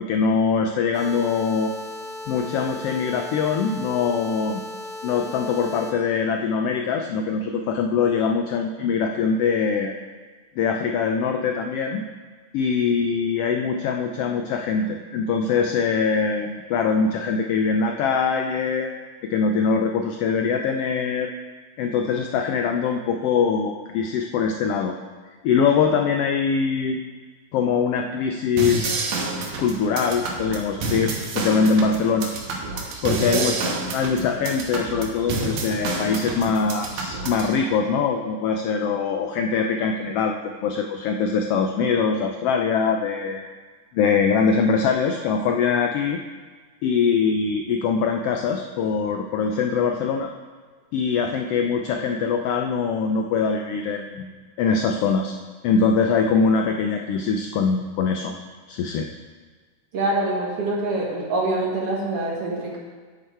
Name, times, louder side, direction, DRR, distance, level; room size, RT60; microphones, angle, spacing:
voice 1, 0.0-1.7 2.3-4.6 5.0-9.9 10.6-12.0 12.5-18.9 19.3-21.3 21.8-24.9 25.4-27.0 27.5-29.0 29.6-32.3 33.0-43.4 43.9-46.2 46.8-50.3 50.9-54.3 54.6-55.3 55.6-58.3 58.7-59.1, left 5 dB, 85° left, 4 dB, 1.3 m, -23 dB
sound 1, 0.9-5.9, left 2 dB, 5° left, 1.7 m, -36 dB
sound 2, 28.6-37.5, right 3 dB, 85° right, 2.7 m, -29 dB
voice 2, 33.1-33.4 59.9-62.8, right 2 dB, 55° right, -3 dB, 2.4 m, -25 dB
9.7 x 9.3 x 4.5 m, 1.5 s
omnidirectional pair, 3.3 m